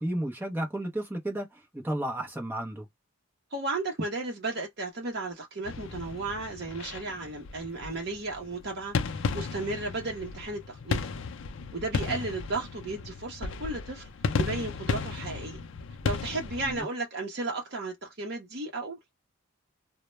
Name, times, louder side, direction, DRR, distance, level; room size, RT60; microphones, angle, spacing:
voice 1, 0.0-2.9 12.1-12.2 16.6-16.8, right 1 dB, 10° right, 0.6 m, -33 dB
voice 2, 3.5-11.0 11.7-14.1 14.4-15.6 16.0-19.0, right 2 dB, 50° right, 0.7 m, -34 dB
sound 1, 5.6-16.8, left 5 dB, 55° left, 0.4 m, -34 dB
2.1 x 2.0 x 2.9 m
head